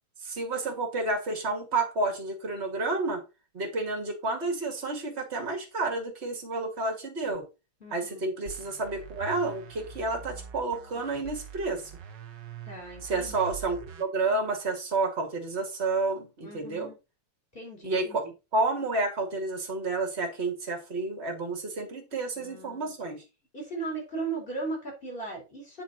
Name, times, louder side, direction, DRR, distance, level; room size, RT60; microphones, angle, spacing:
voice 1, 0.2-3.2 3.5-7.5 7.9-11.9 13.0-16.9 17.8-18.3 18.5-23.2, right 3 dB, 30° right, 2.4 m, -30 dB
voice 2, 7.8-8.2 12.7-13.5 16.4-17.0 17.5-18.2 22.3-22.9 23.5-25.8, right 3 dB, 25° left, 4.2 m, -37 dB
sound 1, 8.5-14.0, right 8 dB, 55° right, 1.7 m, -44 dB
8.5 x 5.9 x 4.1 m
omnidirectional pair, 2.4 m